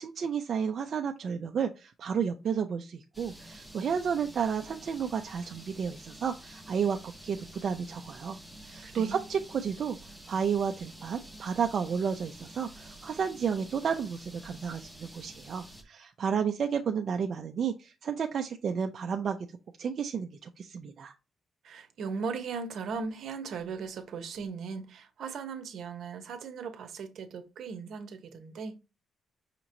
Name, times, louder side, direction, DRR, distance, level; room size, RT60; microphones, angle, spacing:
voice 1, 0.0-19.4 19.8-21.1, right 7 dB, 50° right, 0.4 m, -32 dB
sound 1, 3.1-15.8, right 1 dB, ahead, 0.8 m, -49 dB
voice 2, 8.8-9.2 21.6-28.8, right 5 dB, 70° right, 0.8 m, -38 dB
5.8 x 2.9 x 2.6 m
cardioid pair, 135°, 0 cm